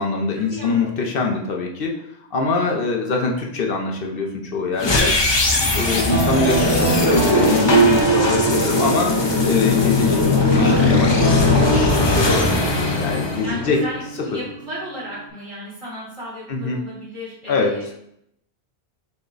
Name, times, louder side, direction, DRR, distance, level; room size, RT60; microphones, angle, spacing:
voice 1, 0.0-2.0 2.3-5.2 5.8-12.5 13.0-13.8 16.5-16.8 17.5-17.9, left 4 dB, 60° left, 0 dB, 0.8 m, -23 dB
sound 1, 4.8-14.0, left 2 dB, 35° left, 0.5 m, -18 dB
voice 2, 5.5-5.8 9.7-9.9 13.4-18.0, equal, 45° right, -8 dB, 1.7 m, -35 dB
Guitar, 6.1-9.9 10.5-15.3, right 4 dB, 70° right, 0.9 m, -27 dB
5.9 x 2.2 x 3.8 m, 0.75 s
omnidirectional pair, 1.1 m